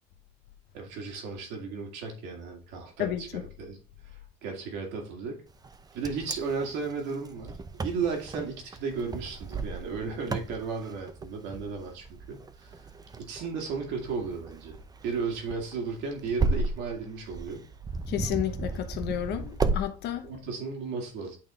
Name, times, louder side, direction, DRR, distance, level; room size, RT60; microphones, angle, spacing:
voice 1, 0.7-3.3 3.6-3.8 4.0-5.4 5.9-12.7 13.2-14.8 15.0-17.6 20.2-21.4, right 5 dB, 80° right, 2.2 m, -34 dB
voice 2, 3.0-3.4 18.1-20.3, left 11 dB, 65° left, 0.9 m, -31 dB
Wind, 5.6-19.8, right 3 dB, 20° right, 0.6 m, -34 dB
8.7 x 3.8 x 3.7 m
cardioid pair, 100°, 18 cm